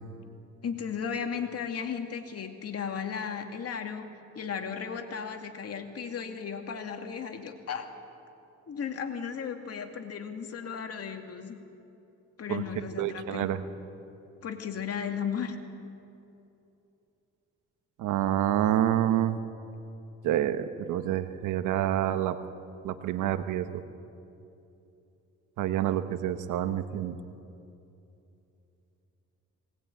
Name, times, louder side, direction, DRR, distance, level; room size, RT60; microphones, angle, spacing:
voice 1, 0.6-4.1 4.3-7.9 8.7-11.6 12.4-13.6 14.4-15.6, left 7 dB, 55° left, 5 dB, 2.4 m, -35 dB
voice 2, 13.0-13.6 18.0-19.4 20.2-22.4 22.8-23.8 25.6-27.2, right 11 dB, 90° right, 10 dB, 1.1 m, -28 dB
19.5 x 19.5 x 9.2 m, 2.8 s
cardioid pair, 90°, 30 cm